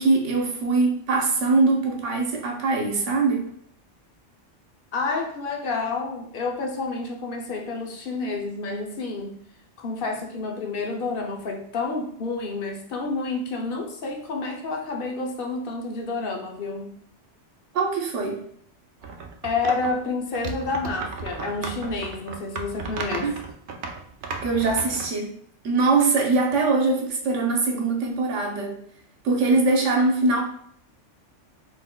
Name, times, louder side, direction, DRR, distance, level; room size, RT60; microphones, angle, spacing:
voice 1, 0.0-3.5 17.7-18.4 23.2-23.3 24.4-25.3 25.6-28.8 29.2-30.4, right 3 dB, 85° right, 1 dB, 1.2 m, -22 dB
voice 2, 4.9-9.4 9.8-16.9 19.4-23.3, left 3 dB, 55° left, 2 dB, 0.8 m, -29 dB
sound 1, 19.0-20.0 20.3-25.1, right 4 dB, 60° right, 0.6 m, -34 dB
4.2 x 4.2 x 2.2 m, 0.66 s
omnidirectional pair, 1.2 m